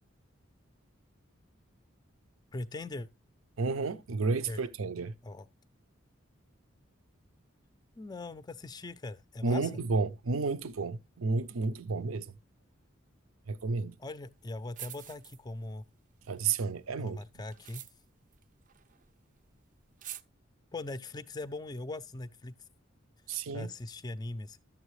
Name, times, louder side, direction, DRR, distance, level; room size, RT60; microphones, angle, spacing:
voice 1, 2.5-3.1 4.5-4.6 5.2-5.5 8.0-9.7 14.0-15.8 17.0-17.8 20.7-22.6 23.5-24.6, left 2 dB, 20° left, 0.4 m, -40 dB
voice 2, 3.6-5.1 9.4-12.3 13.5-14.0 16.3-17.2 23.3-23.7, right 4 dB, 90° right, 0.6 m, -31 dB
sound 1, 14.4-14.5 14.7-15.8 16.1-19.2 19.5-19.6 19.8-20.2, right 11 dB, 40° right, 0.4 m, -47 dB
12.0 x 7.3 x 3.1 m
head